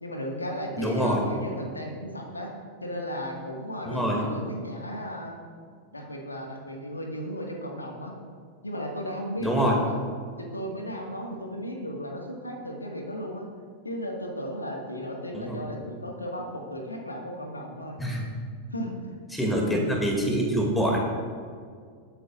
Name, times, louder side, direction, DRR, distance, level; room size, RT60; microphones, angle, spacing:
voice 1, 0.0-2.5 2.8-5.4 5.9-8.2 8.6-9.9 10.4-13.5 13.8-18.0 18.7-18.9 19.4-20.0, equal, 80° left, 1 dB, 1.8 m, -35 dB
voice 2, 0.8-1.2 3.9-4.2 9.4-9.8 15.3-15.6 18.0-18.3 19.3-21.0, equal, 5° left, -1 dB, 2.5 m, -25 dB
21.5 x 8.9 x 2.6 m, 2.1 s
figure-of-eight pair, 90°, 0 cm